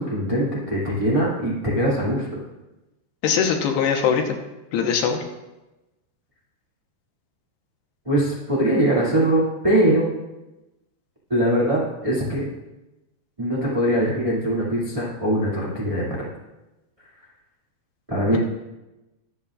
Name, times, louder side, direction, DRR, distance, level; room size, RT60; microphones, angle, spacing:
voice 1, 0.0-2.4 8.0-10.0 11.3-12.4 13.4-16.2 18.1-18.4, right 1 dB, 10° right, -7 dB, 1.5 m, -22 dB
voice 2, 3.2-4.4 4.7-5.2, left 7 dB, 80° left, 3 dB, 3.1 m, -21 dB
22.0 x 8.3 x 2.5 m, 1.0 s
omnidirectional pair, 4.8 m